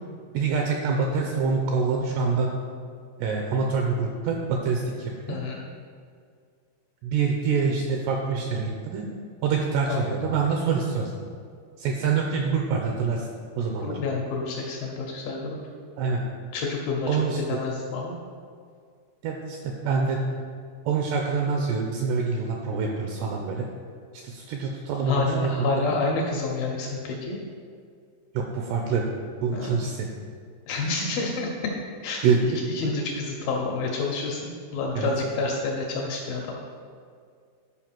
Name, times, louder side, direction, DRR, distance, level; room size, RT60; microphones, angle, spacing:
voice 1, 0.3-2.5 3.2-5.4 7.0-9.1 9.4-11.1 11.8-13.3 13.6-14.0 16.0-16.2 17.1-17.4 19.2-20.5 20.9-23.7 24.1-25.7 28.3-29.1 29.4-30.1 32.2-32.4 34.9-35.1, right 5 dB, 85° right, 1 dB, 2.4 m, -26 dB
voice 2, 5.3-5.6 9.9-10.2 13.8-15.6 16.5-18.1 25.1-27.4 29.5-29.8 30.7-31.5 32.0-32.3 32.7-36.5, left 3 dB, 80° left, -1 dB, 2.2 m, -29 dB
11.0 x 4.7 x 6.0 m, 2.1 s
omnidirectional pair, 5.5 m